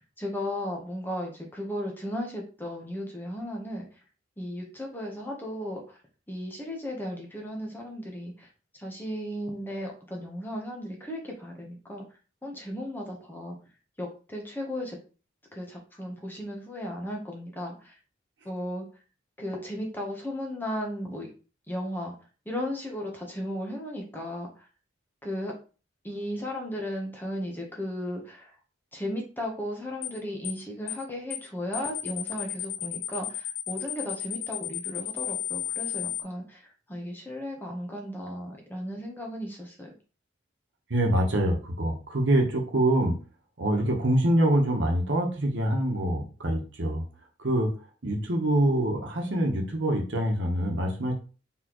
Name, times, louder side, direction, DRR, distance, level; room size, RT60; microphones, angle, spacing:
voice 1, 0.2-3.9 4.4-6.0 6.3-8.5 8.7-12.0 12.4-13.6 14.0-15.0 15.5-18.0 18.4-18.9 19.4-21.3 21.7-22.1 22.5-24.7 25.2-25.5 26.0-28.5 28.9-39.9, equal, 10° left, 0 dB, 1.0 m, -35 dB
sound 1, 30.0-30.2 30.4-30.6 30.9-31.0 31.3-31.5 31.7-36.2, left 12 dB, 75° left, 0.4 m, -33 dB
voice 2, 40.9-43.1 43.6-47.0 47.4-47.7 48.0-51.1, right 1 dB, 70° right, 2 dB, 1.1 m, -25 dB
4.3 x 3.6 x 3.0 m, 0.36 s
head